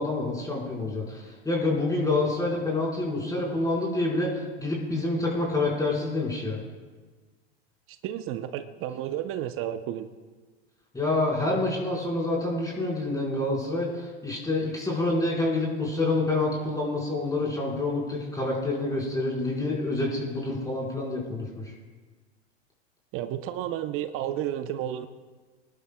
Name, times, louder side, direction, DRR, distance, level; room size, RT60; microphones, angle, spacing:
voice 1, 0.0-6.6 10.9-21.7, left 2 dB, 10° left, -4 dB, 4.5 m, -27 dB
voice 2, 7.9-10.1 23.1-25.1, right 11 dB, 40° right, 10 dB, 0.7 m, -32 dB
26.0 x 11.0 x 2.3 m, 1.3 s
hypercardioid pair, 95°, 32 cm